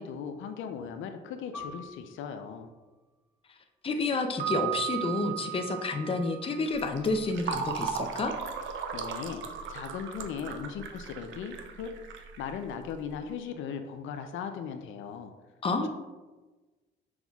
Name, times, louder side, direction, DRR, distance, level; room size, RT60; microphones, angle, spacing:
voice 1, 0.0-2.7 8.9-9.4 9.7-11.9 12.2-15.3, left 7 dB, 80° left, 7 dB, 0.4 m, -38 dB
Piano, 1.5-6.6 6.9-7.1 7.8-8.2, left 3 dB, 10° right, 1.2 m, -50 dB
voice 2, 3.8-8.3 15.6-15.9, left 3 dB, 30° left, 5 dB, 0.5 m, -30 dB
Piano 2, 4.4-7.3, right 18 dB, 45° right, 0.9 m, -36 dB
Fill (with liquid), 6.7-13.1, right 5 dB, 70° right, 0.5 m, -37 dB
6.1 x 3.6 x 2.3 m, 1.2 s
cardioid pair, 90°, 20 cm